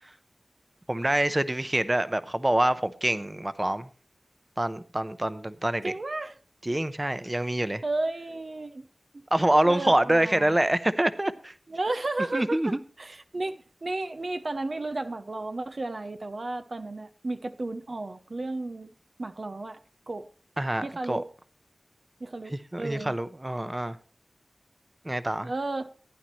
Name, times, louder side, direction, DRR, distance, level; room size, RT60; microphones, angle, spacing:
voice 1, 0.9-3.9 4.6-5.9 6.6-7.8 9.3-11.5 12.3-12.8 20.6-21.2 22.5-24.0 25.0-25.5, right 1 dB, 25° right, 0.8 m, -26 dB
voice 2, 5.8-6.4 7.8-8.9 9.1-9.3 9.6-10.5 11.7-18.9 19.2-19.8 20.1-20.3 20.8-21.3 22.2-23.2 25.4-25.9, right 2 dB, 60° right, 0.7 m, -33 dB
15.5 x 9.9 x 3.1 m
wide cardioid pair, 50°, 0 cm